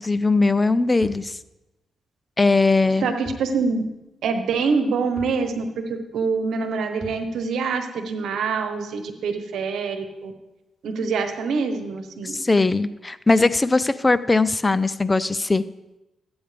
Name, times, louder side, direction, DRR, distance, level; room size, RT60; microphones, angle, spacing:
voice 1, 0.0-1.4 2.4-3.1 12.2-15.6, left 3 dB, 25° left, 15 dB, 0.4 m, -20 dB
sound 1, 1.0-1.3 3.2-3.5 3.8-3.9 5.2-5.4 7.0-7.3, right 1 dB, 10° right, 3.7 m, -40 dB
voice 2, 3.0-3.8 4.2-10.3 10.8-12.4, right 4 dB, 80° right, 6 dB, 1.1 m, -25 dB
13.5 x 8.7 x 3.4 m, 0.98 s
cardioid pair, 65°, 0 cm